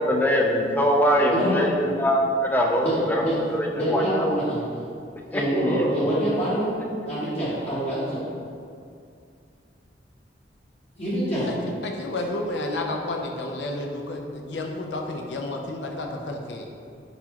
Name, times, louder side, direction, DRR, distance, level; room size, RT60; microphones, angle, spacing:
voice 1, 0.0-3.2 3.9-4.4 5.3-5.8, equal, 10° left, 0 dB, 0.4 m, -22 dB
voice 2, 1.3-1.7 2.8-2.9 3.2-3.4 3.7-4.6 5.3-6.7 7.1-8.2 11.0-11.5, right 1 dB, 35° left, -10 dB, 0.9 m, -25 dB
voice 3, 11.5-16.7, left 2 dB, 80° left, 2 dB, 0.5 m, -31 dB
4.6 x 4.1 x 2.9 m, 2.4 s
head